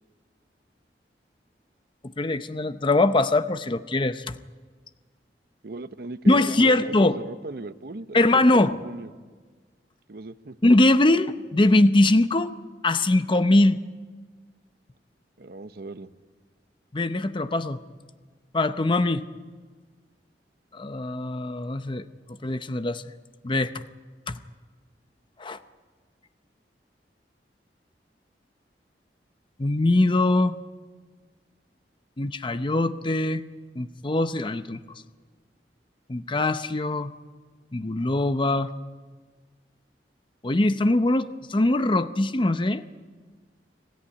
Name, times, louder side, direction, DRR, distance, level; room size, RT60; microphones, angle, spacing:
voice 1, 2.0-4.4 6.3-7.2 8.1-8.8 10.6-12.5 12.8-13.8 16.9-17.8 18.5-19.2 20.7-22.0 22.4-23.0 23.4-23.7 24.3-24.4 25.4-25.6 29.6-30.6 32.2-33.4 33.8-34.8 36.1-37.1 37.7-38.7 40.4-42.8, left 2 dB, 30° left, 11 dB, 0.7 m, -22 dB
voice 2, 5.6-9.1 10.1-10.6 15.4-16.1, right 2 dB, 60° right, 12 dB, 0.8 m, -38 dB
25.5 x 14.5 x 9.9 m, 1.5 s
head